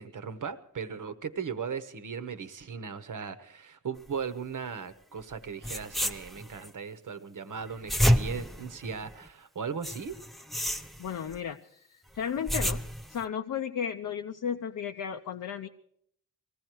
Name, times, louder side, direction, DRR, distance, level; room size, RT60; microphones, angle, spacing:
voice 1, 0.0-10.2, right 6 dB, 65° right, 11 dB, 1.1 m, -37 dB
sound 1, 5.3-5.4 5.6-6.7 7.6-9.3 9.8-11.4 12.2-13.2, equal, ahead, 0.7 m, -29 dB
voice 2, 11.0-12.8 13.1-15.7, left 8 dB, 65° left, 5 dB, 0.6 m, -34 dB
19.5 x 15.0 x 4.6 m, 0.68 s
cardioid pair, 65°, 34 cm